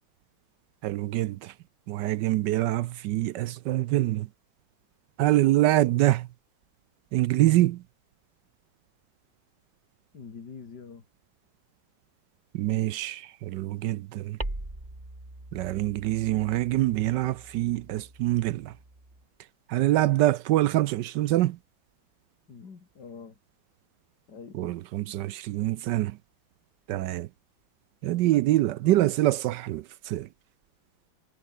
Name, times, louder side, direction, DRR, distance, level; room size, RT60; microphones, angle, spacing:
voice 1, 0.8-1.5 1.9-4.3 5.2-6.3 7.1-7.8 12.5-14.4 15.5-18.7 19.7-21.6 24.6-26.2 26.9-27.3 28.0-30.3, right 15 dB, 75° right, 1.1 m, -25 dB
voice 2, 10.1-11.0 22.5-23.4 24.3-24.7, left 5 dB, 55° left, 3.1 m, -45 dB
sound 1, 14.4-19.2, right 1 dB, 20° right, 4.5 m, -42 dB
omnidirectional pair, 2.1 m